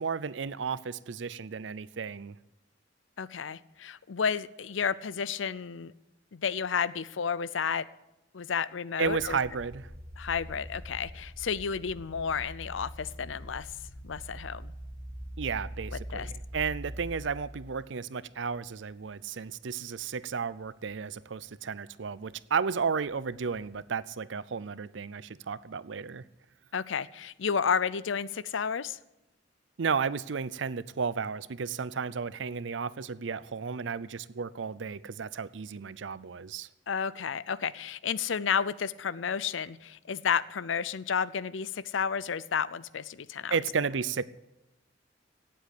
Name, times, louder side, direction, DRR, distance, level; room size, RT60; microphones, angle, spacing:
voice 1, 0.0-2.4 9.0-9.9 15.4-26.2 29.8-36.7 43.5-44.3, right 5 dB, 70° right, 0.6 m, -33 dB
voice 2, 3.2-5.9 6.3-7.9 8.3-9.4 10.2-13.7 14.0-14.7 16.1-16.3 26.7-29.0 36.9-43.5, left 6 dB, 80° left, 0.6 m, -31 dB
sound 1, 9.0-17.8 18.5-18.9 19.5-19.6 23.2-23.8, equal, 5° left, 5.4 m, -43 dB
17.0 x 7.8 x 8.5 m
head